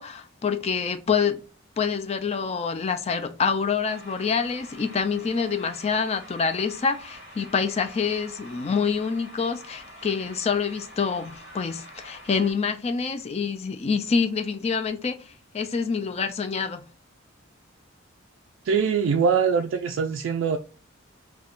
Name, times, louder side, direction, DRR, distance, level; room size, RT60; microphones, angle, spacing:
voice 1, 0.0-1.4 1.8-15.2 15.5-16.8, left 5 dB, 30° left, 0.4 m, -26 dB
sound 1, 3.8-12.5, equal, 65° left, 1.5 m, -46 dB
voice 2, 18.6-20.6, right 6 dB, 65° right, 0.3 m, -23 dB
3.4 x 2.2 x 2.4 m
head